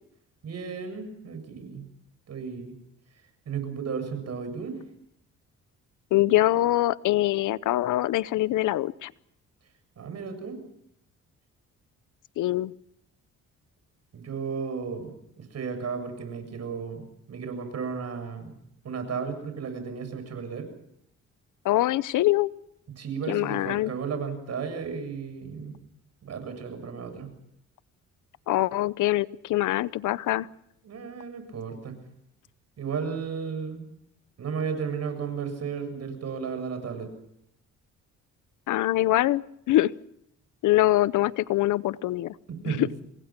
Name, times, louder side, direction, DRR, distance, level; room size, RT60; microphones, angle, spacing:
voice 1, 0.4-1.9 2.3-2.8 3.5-4.8 10.0-10.6 14.1-18.5 18.8-20.7 23.0-25.8 26.2-27.3 30.8-32.0 32.8-33.8 34.4-37.1 42.5-43.0, right 6 dB, 55° right, 8 dB, 7.3 m, -34 dB
voice 2, 6.1-9.1 12.4-12.7 21.6-22.5 23.3-23.9 28.5-30.5 38.7-39.9 40.6-42.3 42.7-42.9, left 15 dB, 80° left, 19 dB, 0.8 m, -24 dB
27.5 x 21.5 x 6.0 m, 0.75 s
cardioid pair, 90°, 30 cm